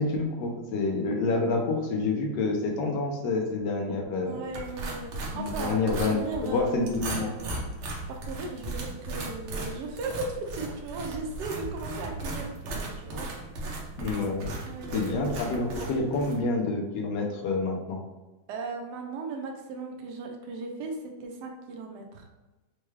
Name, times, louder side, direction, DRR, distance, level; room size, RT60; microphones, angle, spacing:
voice 1, 0.0-4.4 5.3-7.3 14.0-14.6 14.9-18.0, left 3 dB, 70° left, 2 dB, 1.2 m, -28 dB
voice 2, 4.2-5.8 6.1-6.8 7.2-7.6 8.1-13.3 14.6-15.4 18.5-22.3, right 3 dB, 70° right, 2 dB, 1.1 m, -37 dB
sound 1, 4.5-16.4, right 2 dB, 85° right, 1.6 m, -36 dB
4.6 x 2.2 x 3.1 m, 1.1 s
omnidirectional pair, 2.2 m